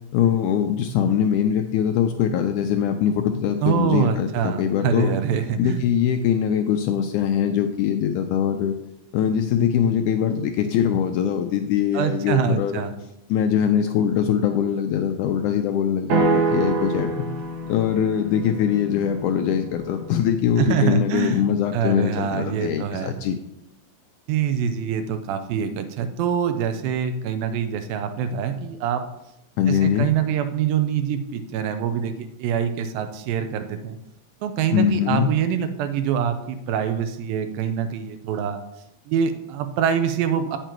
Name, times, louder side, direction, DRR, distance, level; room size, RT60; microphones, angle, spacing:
voice 1, 0.1-5.2 5.6-8.7 9.1-12.8 13.3-17.3 17.7-23.4 29.6-30.1 34.7-35.3, left 9 dB, 80° left, 6 dB, 1.8 m, -22 dB
voice 2, 3.6-5.8 11.9-12.9 20.6-21.4 21.7-23.1 24.3-29.0 29.7-34.0 34.4-38.6 39.1-40.6, right 8 dB, 85° right, 8 dB, 2.5 m, -25 dB
sound 1, 16.1-20.2, right 3 dB, 55° right, 2.3 m, -26 dB
9.0 x 6.7 x 4.5 m, 0.84 s
omnidirectional pair, 4.0 m